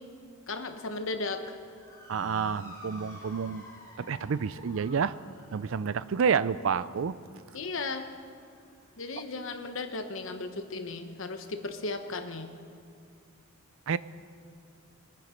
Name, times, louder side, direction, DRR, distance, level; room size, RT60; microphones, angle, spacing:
voice 1, 0.5-1.6 7.5-8.1 9.0-12.5, left 3 dB, 60° left, 7 dB, 1.1 m, -35 dB
Motor vehicle (road) / Siren, 1.6-10.2, left 1 dB, 15° left, 3.0 m, -52 dB
voice 2, 2.1-3.7 4.0-5.1 5.5-7.2 13.9-14.0, right 6 dB, 60° right, 16 dB, 0.4 m, -29 dB
22.5 x 9.3 x 5.2 m, 2.3 s
head